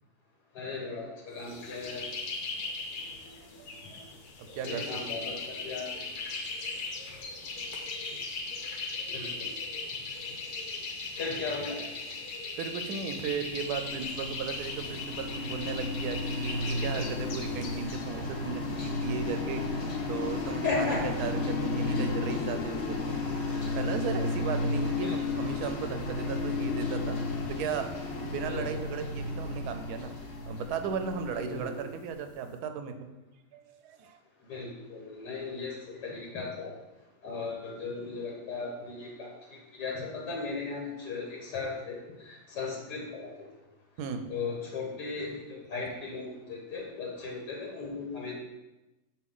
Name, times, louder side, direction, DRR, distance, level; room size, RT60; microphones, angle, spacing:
voice 1, 0.5-2.0 4.6-5.9 9.1-9.5 11.1-11.8 20.6-21.1 21.9-22.0 25.0-25.2 28.4-28.8 31.4-31.8 34.5-36.7 37.2-43.3 44.3-48.3, left 4 dB, 85° left, -2 dB, 1.7 m, -36 dB
sound 1, 1.4-18.0, left 3 dB, 70° left, 1.4 m, -38 dB
voice 2, 3.6-4.0 4.4-4.9 5.1-5.3 12.6-19.6 20.1-23.2 23.7-27.2 27.5-30.1 30.5-33.1 33.5-34.2 34.5-34.6 44.0-44.2, right 6 dB, 75° right, 8 dB, 1.1 m, -36 dB
sound 2, 13.2-32.2, left 3 dB, 50° left, 1.1 m, -33 dB
6.8 x 4.4 x 3.7 m, 1.0 s
omnidirectional pair, 1.8 m